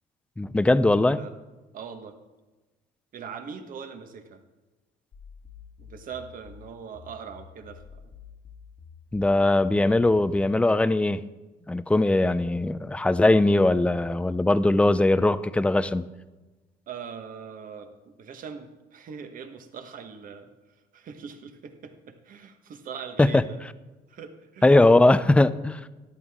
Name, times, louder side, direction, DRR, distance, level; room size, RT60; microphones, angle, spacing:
voice 1, 0.4-1.2 9.1-11.2 11.7-16.1 23.2-23.4 24.6-25.9, left 2 dB, 5° left, 15 dB, 0.4 m, -20 dB
voice 2, 0.9-1.3 1.7-2.2 3.1-4.4 5.8-8.1 16.9-20.5 20.9-23.6 24.1-24.9, right 6 dB, 55° right, 7 dB, 1.3 m, -41 dB
sound 1, 5.1-10.6, left 6 dB, 50° left, 1.5 m, -48 dB
13.5 x 11.5 x 3.6 m, 1.2 s
cardioid pair, 110°, 17 cm